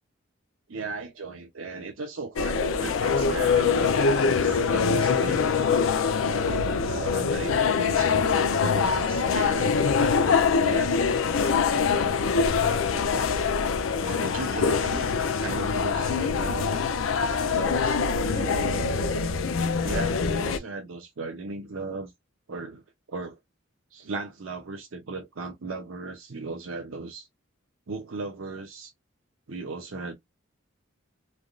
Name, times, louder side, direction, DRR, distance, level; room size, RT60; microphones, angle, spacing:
voice 1, 0.7-5.5 6.2-10.2 10.5-11.0 11.3-11.7 12.5-13.1 13.9-15.1 15.4-16.8 17.5-19.3 19.8-22.1 22.5-22.8 23.1-23.4 23.9-27.3 27.9-28.9 29.5-30.1, right 3 dB, 90° right, 0.7 m, -36 dB
sound 1, 2.4-20.6, left 5 dB, 85° left, 0.5 m, -24 dB
3.3 x 2.4 x 2.3 m
head